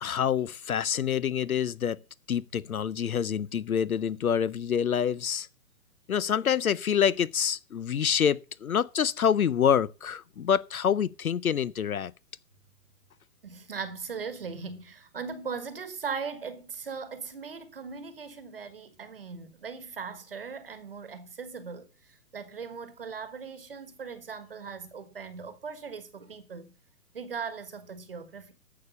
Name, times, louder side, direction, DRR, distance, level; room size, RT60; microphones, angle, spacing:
voice 1, 0.0-2.0 2.3-5.5 6.1-12.1, left 8 dB, 60° left, 0.6 m, -26 dB
voice 2, 13.4-26.7 27.1-28.5, right 5 dB, 35° right, 1.4 m, -39 dB
11.5 x 6.9 x 6.8 m
hypercardioid pair, 180°, 48 cm